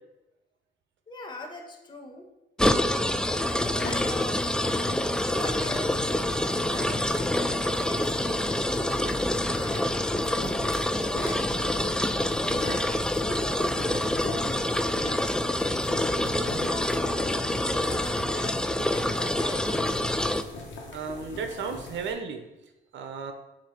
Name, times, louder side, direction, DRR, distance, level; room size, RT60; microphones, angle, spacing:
voice 1, 1.1-2.3 3.3-4.5 5.2-7.4 7.8-12.7 13.0-14.6 15.0-16.3 16.7-17.4 17.8-20.0, left 2 dB, 20° left, 1 dB, 1.1 m, -42 dB
sound 1, 2.6-20.4, left 1 dB, 5° left, 0.3 m, -27 dB
sound 2, 3.4-22.1, left 3 dB, 80° left, 1.3 m, -41 dB
voice 2, 20.9-22.5 22.9-23.3, right 5 dB, 70° right, 5 dB, 0.8 m, -34 dB
7.2 x 2.8 x 5.7 m, 1.0 s
cardioid pair, 90°, 20 cm